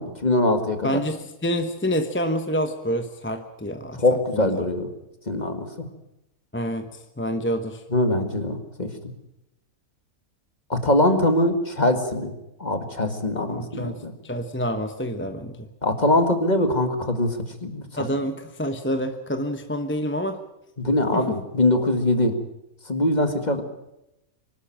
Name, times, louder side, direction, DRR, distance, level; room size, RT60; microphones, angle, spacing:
voice 1, 0.0-0.9 4.0-4.9 5.3-5.7 7.9-8.9 10.7-12.3 12.6-14.1 15.8-17.9 20.8-22.3 22.9-23.6, left 1 dB, 30° left, 7 dB, 2.0 m, -22 dB
voice 2, 0.8-4.7 6.5-7.8 13.5-15.7 18.0-20.4 21.1-21.4, equal, 10° left, 7 dB, 1.0 m, -28 dB
24.5 x 12.5 x 8.9 m, 0.88 s
omnidirectional pair, 1.6 m